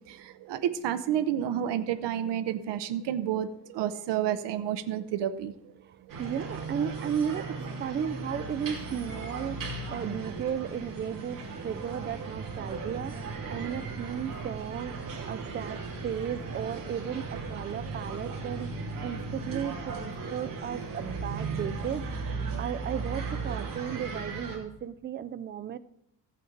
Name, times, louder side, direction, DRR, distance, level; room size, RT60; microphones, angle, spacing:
voice 1, 0.1-5.7, right 10 dB, 85° right, 0.8 m, -30 dB
voice 2, 5.8-18.7 19.0-25.8, right 8 dB, 30° right, 0.4 m, -35 dB
sound 1, 6.1-24.6, right 4 dB, 50° right, 3.0 m, -36 dB
14.5 x 8.5 x 3.9 m
cardioid pair, 165°, 41 cm